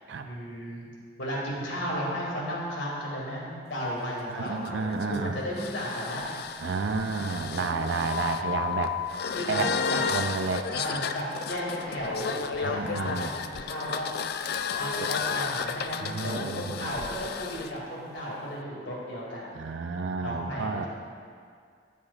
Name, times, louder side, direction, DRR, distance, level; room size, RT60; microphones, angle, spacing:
voice 1, 0.2-0.9 1.2-6.2 6.5-6.6 6.9-7.3 9.3-10.0 10.7-14.1 14.8-19.5 20.2-20.9, equal, 80° left, -4 dB, 2.4 m, -34 dB
sound 1, 4.0-17.7, left 6 dB, 55° left, 0.3 m, -33 dB
voice 2, 4.3-5.4 6.6-9.0 9.5-9.7 10.1-10.7 12.6-13.3 15.0-15.1 16.0-16.9 19.5-20.9, right 4 dB, 85° right, 6 dB, 0.5 m, -31 dB
12.5 x 8.3 x 2.4 m, 2.2 s
head